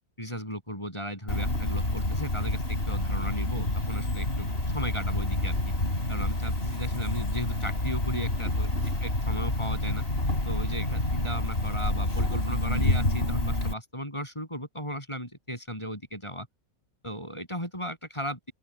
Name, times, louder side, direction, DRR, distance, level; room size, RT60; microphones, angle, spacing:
voice 1, 0.2-4.5 4.7-5.6 6.1-8.7 9.0-10.0 10.4-16.5 17.0-18.5, equal, 20° left, 8.2 m, -36 dB
Cricket, 1.3-13.7, left 1 dB, 45° left, 5.3 m, -28 dB
open air
omnidirectional pair, 1.5 m